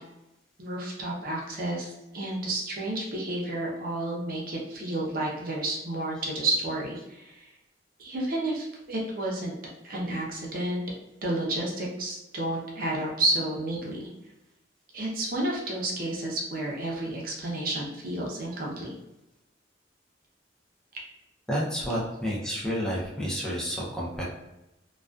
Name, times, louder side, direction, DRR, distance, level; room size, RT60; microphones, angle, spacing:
voice 1, 0.6-7.5 8.0-9.5 9.8-10.8 11.2-14.1 14.9-19.0, right 2 dB, 50° right, -2 dB, 0.6 m, -31 dB
voice 2, 21.5-24.2, equal, 5° left, -5 dB, 0.5 m, -30 dB
2.4 x 2.3 x 2.3 m, 0.93 s
head